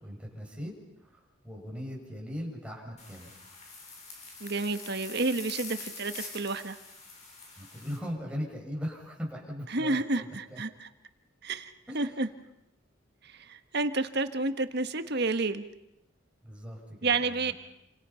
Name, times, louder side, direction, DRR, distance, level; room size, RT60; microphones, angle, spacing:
voice 1, 0.0-3.4 7.6-10.6 11.9-12.2 16.4-17.5, equal, 5° right, -1 dB, 6.6 m, -39 dB
sound 1, 3.0-8.0, left 3 dB, 35° left, 6.2 m, -45 dB
voice 2, 4.4-6.8 9.7-10.9 11.4-12.3 13.2-15.6 17.0-17.5, right 3 dB, 55° right, 9 dB, 1.5 m, -30 dB
29.5 x 27.0 x 5.8 m, 0.87 s
head